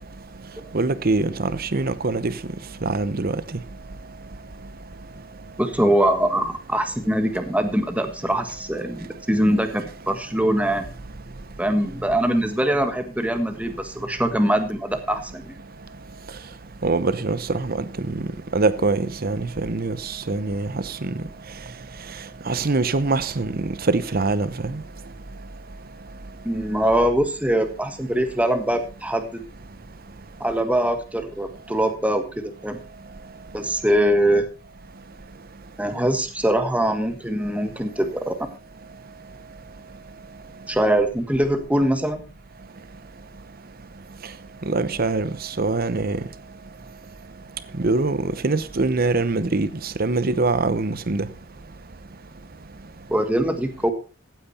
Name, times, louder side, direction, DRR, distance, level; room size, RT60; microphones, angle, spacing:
voice 1, 0.7-2.3 2.8-3.4 16.8-18.2 18.5-21.1 22.5-24.8 44.7-45.3 45.6-46.2 47.8-48.2 48.4-51.3, right 3 dB, 50° right, 0.9 m, -23 dB
voice 2, 5.6-10.9 11.6-15.6 26.4-29.4 30.4-32.8 33.5-34.5 35.8-38.3 40.7-42.2 53.1-53.9, right 1 dB, 5° right, 1.5 m, -22 dB
15.5 x 9.3 x 4.2 m
head